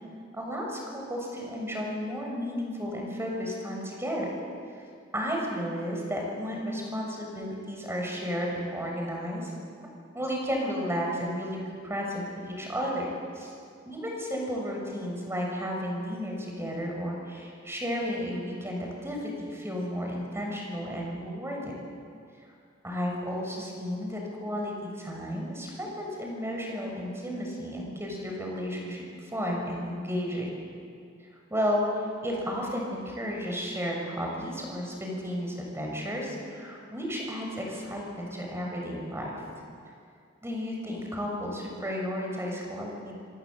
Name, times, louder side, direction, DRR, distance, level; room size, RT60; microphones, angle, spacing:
voice 1, 0.3-4.3 5.1-9.5 10.1-13.0 13.3-13.5 13.8-21.7 22.8-30.5 31.5-39.3 40.4-43.2, equal, 15° right, -1 dB, 6.6 m, -33 dB
26.5 x 25.5 x 8.0 m, 2.3 s
head